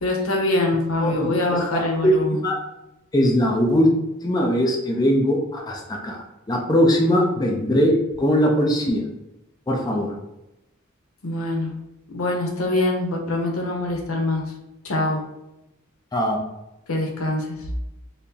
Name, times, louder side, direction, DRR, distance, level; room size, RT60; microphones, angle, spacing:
voice 1, 0.0-2.4 11.2-11.7 12.1-14.5 14.8-15.2 16.9-17.5, left 2 dB, 80° left, 2 dB, 0.7 m, -24 dB
voice 2, 1.0-2.6 3.1-3.9 4.2-9.0 9.7-10.1 16.1-16.4, equal, 20° left, 0 dB, 0.4 m, -21 dB
4.1 x 2.0 x 3.5 m, 0.92 s
head